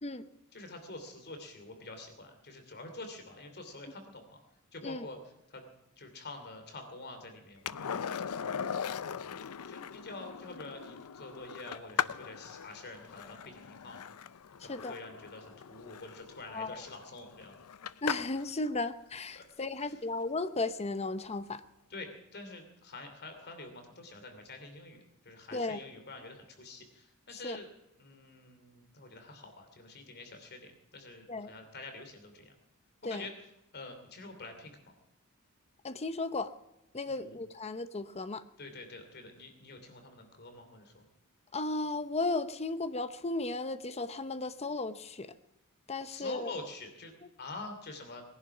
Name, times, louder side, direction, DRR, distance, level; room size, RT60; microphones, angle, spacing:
voice 1, 0.5-4.4 4.7-5.2 5.5-5.6 6.0-8.1 8.3-9.3 9.6-14.0 14.6-17.6 19.3-19.5 19.8-20.0 21.9-27.7 28.0-32.5 33.1-33.3 33.7-34.9 37.1-37.3 38.6-41.1 46.1-48.2, left 2 dB, 50° left, 6 dB, 2.8 m, -47 dB
Skateboard, 7.7-18.5 21.1-21.2, left 7 dB, 85° left, 0.6 m, -39 dB
voice 2, 16.5-16.8 18.0-21.6 25.5-25.8 27.3-27.6 31.3-31.5 33.0-33.3 35.8-36.5 36.9-38.4 41.5-45.3 45.9-46.5, left 2 dB, 30° left, 10 dB, 0.8 m, -35 dB
20.0 x 11.0 x 6.0 m, 0.87 s
head